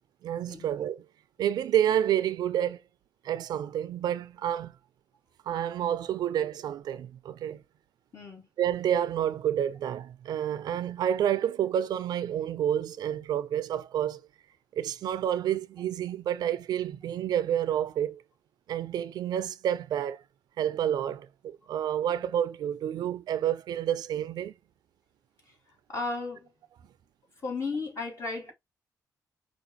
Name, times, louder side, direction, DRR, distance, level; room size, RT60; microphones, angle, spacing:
voice 1, 0.2-1.0 1.4-2.8 3.2-4.7 5.5-7.6 8.6-14.2 14.7-18.2 18.7-20.2 20.6-24.5, right 10 dB, 80° right, 0.5 m, -29 dB
voice 2, 8.1-8.5 25.9-26.5 27.4-28.5, left 3 dB, 45° left, 2.4 m, -34 dB
5.1 x 2.5 x 2.8 m
cardioid pair, 75°, 7 cm